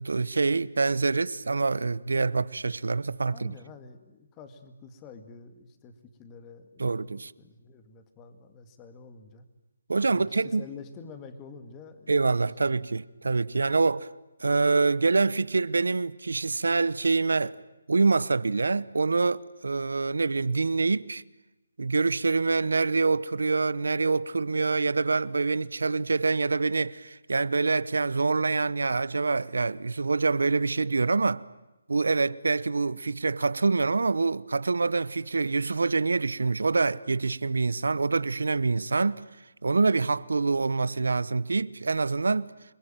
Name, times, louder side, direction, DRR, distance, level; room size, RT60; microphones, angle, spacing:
voice 1, 0.0-3.5 6.8-7.3 9.9-10.6 12.1-14.1 14.4-17.6 17.9-21.2 21.8-31.4 31.9-39.2 39.6-42.5, right 3 dB, 80° right, 1.0 m, -26 dB
voice 2, 3.3-9.5 10.1-12.7, left 5 dB, 15° left, 2.1 m, -48 dB
28.5 x 21.5 x 9.1 m
hypercardioid pair, 160°, 0 cm